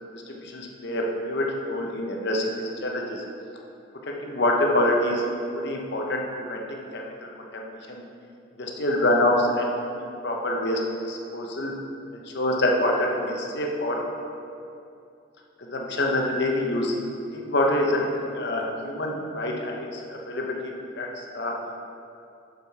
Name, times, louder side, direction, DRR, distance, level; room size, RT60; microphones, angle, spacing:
voice 1, 0.1-3.2 4.0-5.2 5.5-8.0 8.5-11.7 12.1-14.1 15.6-16.9 17.3-18.1 18.3-21.6, left 1 dB, 65° left, 0 dB, 1.1 m, -26 dB
8.2 x 6.7 x 4.3 m, 2.6 s
head